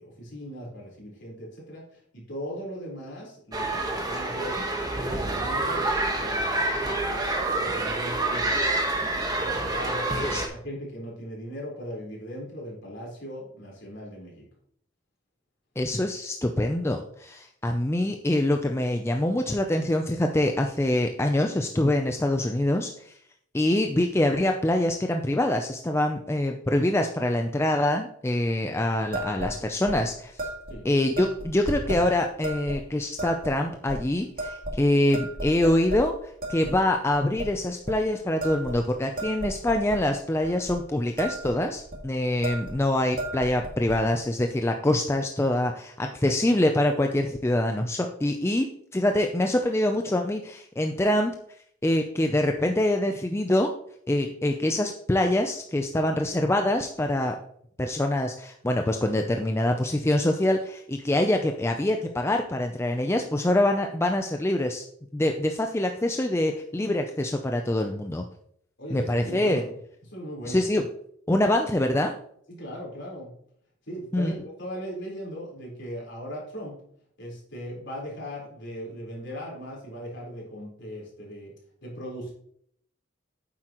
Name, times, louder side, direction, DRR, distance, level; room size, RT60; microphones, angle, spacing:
voice 1, 0.0-4.6 5.0-8.6 9.7-14.5 30.7-30.9 68.8-69.7 70.0-70.6 72.5-73.3 73.8-76.8 77.2-81.5 81.8-82.3, equal, 55° left, -3 dB, 4.0 m, -39 dB
sound 1, 3.5-10.5, right 2 dB, 20° right, 1.2 m, -27 dB
voice 2, 15.8-23.1 23.5-30.5 30.8-48.7 48.9-51.3 51.8-53.7 54.1-57.4 57.8-64.8 65.1-68.2 68.9-69.6 70.5-70.8 71.3-72.1 74.1-74.3, left 1 dB, 15° left, 4 dB, 0.4 m, -25 dB
sound 2, 29.1-29.5 29.9-30.0 30.4-30.7 31.2-32.0 32.4-32.8 33.2-33.5 33.9-34.0 34.4-34.9 35.1-36.0 36.4-36.8 37.1-37.5 37.8-38.0 38.4-40.0 40.4-40.8 41.0-41.5 41.8-42.0 42.4-42.8 43.0-44.0, right 1 dB, 45° right, 2.0 m, -34 dB
9.2 x 7.5 x 3.0 m, 0.66 s
head